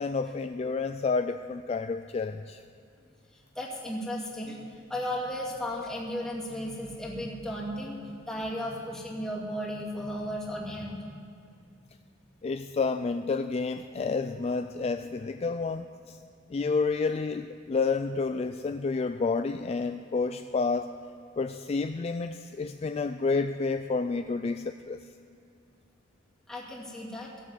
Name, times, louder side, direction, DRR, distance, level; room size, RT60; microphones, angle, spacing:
voice 1, 0.0-2.6 12.4-16.2 16.5-20.9 21.4-25.0, left 4 dB, 30° left, 9 dB, 0.3 m, -30 dB
voice 2, 3.6-4.6 4.9-11.0 26.5-27.3, equal, 5° left, -4 dB, 2.2 m, -35 dB
15.5 x 8.1 x 7.8 m, 2.4 s
head